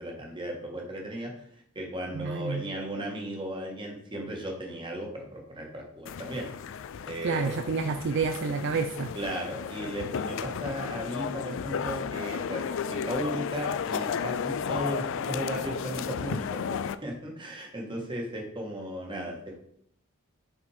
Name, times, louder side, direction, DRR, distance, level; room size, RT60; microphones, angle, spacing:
voice 1, 0.0-1.3 1.7-6.5 7.1-7.6 9.1-19.6, right 1 dB, 25° right, 0 dB, 1.5 m, -36 dB
voice 2, 2.1-2.6 7.2-9.1, right 5 dB, 55° right, 7 dB, 0.4 m, -29 dB
sound 1, 6.1-17.0, left 6 dB, 60° left, 0.4 m, -33 dB
5.9 x 4.5 x 4.8 m, 0.68 s
head